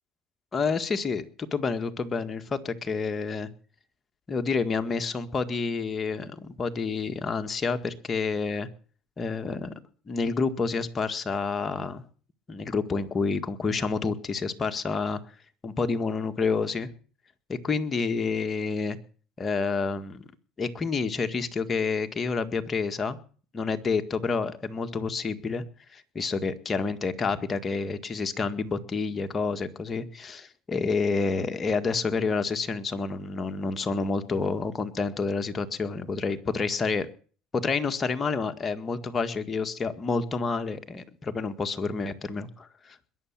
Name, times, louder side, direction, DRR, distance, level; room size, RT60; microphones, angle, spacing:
voice 1, 0.5-3.5 4.3-8.7 9.2-9.7 10.1-12.0 12.5-15.2 15.6-16.9 17.5-19.0 19.4-20.3 20.6-23.2 23.5-25.6 25.9-37.1 37.5-43.0, left 4 dB, 30° left, 7 dB, 1.8 m, -29 dB
21.5 x 7.2 x 8.9 m, 0.43 s
supercardioid pair, 100°, 0 cm